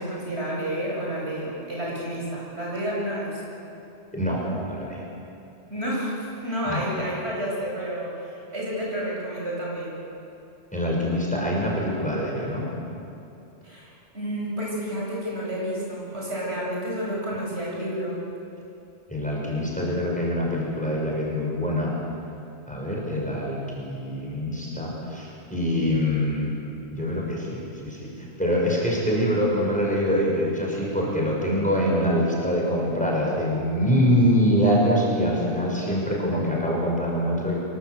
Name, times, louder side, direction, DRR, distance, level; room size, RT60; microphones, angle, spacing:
voice 1, 0.0-3.4 5.7-8.1 8.5-10.0 13.6-13.9 14.1-18.1, equal, 65° right, -4 dB, 8.3 m, -30 dB
voice 2, 4.1-5.0 6.7-6.8 10.7-12.7 19.1-21.9 22.7-26.5 26.9-37.6, equal, 5° left, -4 dB, 6.3 m, -24 dB
26.5 x 23.5 x 8.3 m, 2.8 s
omnidirectional pair, 1.2 m